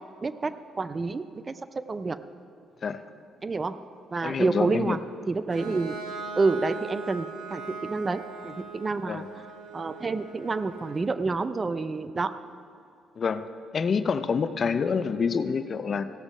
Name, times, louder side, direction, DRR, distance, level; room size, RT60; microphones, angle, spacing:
voice 1, 0.2-2.2 3.4-3.8 4.1-5.0 5.3-6.0 6.4-9.3 9.7-12.4, right 3 dB, 30° right, 13 dB, 0.4 m, -28 dB
voice 2, 4.2-5.0 9.1-9.3 13.2-13.5 13.7-16.0, left 5 dB, 45° left, 11 dB, 0.5 m, -27 dB
Bowed string instrument, 5.5-11.1, right 4 dB, 85° right, 1.4 m, -40 dB
16.0 x 7.1 x 5.4 m, 2.6 s
cardioid pair, 90°, 0 cm